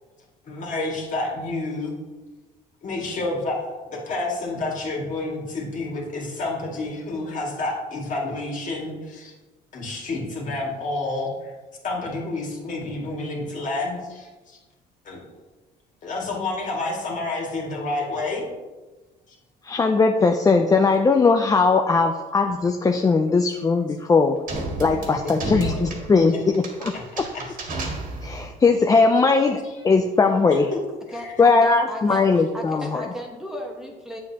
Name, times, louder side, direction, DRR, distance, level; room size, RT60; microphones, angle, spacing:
voice 1, 0.4-1.9 2.8-9.3 9.7-11.5 11.8-14.6 15.0-15.2 16.0-18.4 25.6-25.8 27.3-27.4 30.7-30.8 31.1-31.3, left 2 dB, 50° left, -2 dB, 2.2 m, -29 dB
voice 2, 19.6-24.4 24.8-27.2 28.2-30.7 31.4-33.1, left 4 dB, 20° left, 4 dB, 0.4 m, -19 dB
sound 1, 24.5-28.6, right 2 dB, 55° right, 1.8 m, -32 dB
voice 3, 31.1-32.3 32.5-34.2, equal, 5° right, -1 dB, 1.0 m, -35 dB
7.8 x 7.5 x 2.9 m, 1.2 s
cardioid pair, 110°, 17 cm